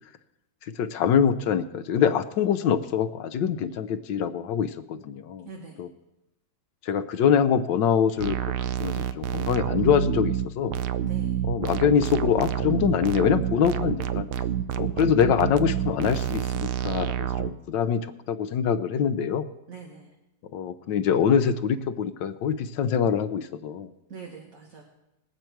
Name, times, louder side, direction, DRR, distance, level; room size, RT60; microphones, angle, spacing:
voice 1, 0.7-5.5 5.8-5.9 6.8-8.4 8.8-10.7 11.4-14.3 14.8-19.5 20.5-23.9, left 8 dB, 75° left, 10 dB, 1.4 m, -24 dB
voice 2, 5.4-5.8 11.0-11.4 19.7-20.1 24.1-24.8, right 5 dB, 45° right, 1 dB, 1.8 m, -43 dB
sound 1, 8.2-17.5, right 10 dB, 85° right, 1.4 m, -28 dB
21.0 x 8.1 x 4.6 m, 0.94 s
omnidirectional pair, 2.1 m